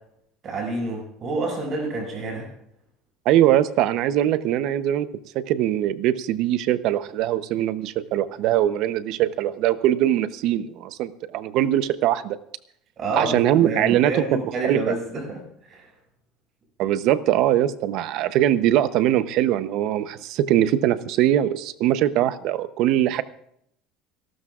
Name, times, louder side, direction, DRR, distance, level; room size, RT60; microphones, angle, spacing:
voice 1, 0.4-2.5 13.0-15.4 15.7-15.9, right 2 dB, 30° right, 0 dB, 6.4 m, -28 dB
voice 2, 3.3-5.1 5.3-12.4 13.1-14.1 14.6-14.9 16.8-23.2, right 12 dB, 50° right, 13 dB, 0.7 m, -21 dB
30.0 x 12.5 x 2.4 m, 0.73 s
cardioid pair, 170°, 0 cm